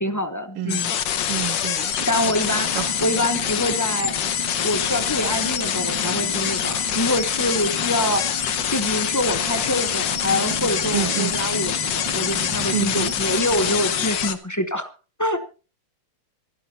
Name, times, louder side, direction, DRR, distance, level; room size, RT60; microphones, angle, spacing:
voice 1, 0.0-0.9 2.1-2.7 3.0-4.1 4.6-8.2 8.7-14.9 15.2-15.4, left 1 dB, 25° left, 0.4 m, -25 dB
sound 1, 0.7-14.4, left 9 dB, 60° left, 1.7 m, -25 dB
voice 2, 1.3-2.1 2.8-2.9 10.9-11.4 12.7-13.1, right 11 dB, 85° right, 1.8 m, -28 dB
sound 2, 2.2-14.1, right 1 dB, 15° right, 1.1 m, -35 dB
26.5 x 11.5 x 2.9 m
omnidirectional pair, 2.4 m